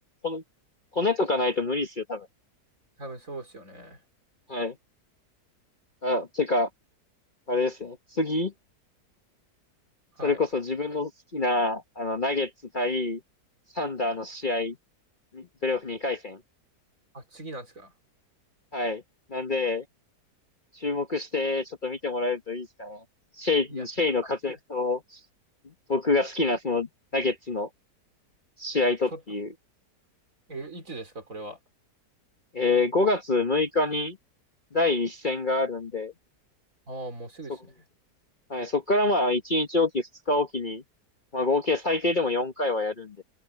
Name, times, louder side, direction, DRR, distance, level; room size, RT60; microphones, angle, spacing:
voice 1, 0.9-2.3 4.5-4.7 6.0-6.7 7.5-8.5 10.2-13.2 13.7-14.8 15.3-16.4 18.7-19.0 19.3-19.8 20.7-23.0 23.4-25.2 25.9-27.7 28.6-29.5 32.5-34.2 34.7-36.1 38.5-40.8 41.3-43.2, left 2 dB, 35° left, 1.2 m, -26 dB
voice 2, 3.0-4.0 10.2-10.4 17.1-17.9 23.7-23.9 29.1-29.2 30.5-31.6 36.9-37.7, right 2 dB, 50° right, 4.5 m, -39 dB
omnidirectional pair, 1.8 m